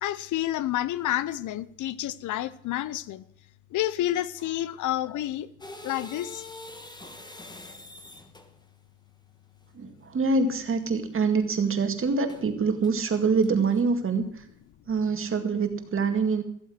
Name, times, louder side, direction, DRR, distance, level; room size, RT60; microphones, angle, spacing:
voice 1, 0.0-3.2 3.7-5.5 5.8-6.4, left 13 dB, 75° left, 0.7 m, -29 dB
sound 1, 5.6-8.7 12.3-12.5 12.8-13.8, left 2 dB, 15° left, 1.6 m, -44 dB
voice 2, 9.7-14.4 14.9-16.4, right 4 dB, 45° right, 2.1 m, -25 dB
14.5 x 8.0 x 7.6 m
cardioid pair, 90°, 30 cm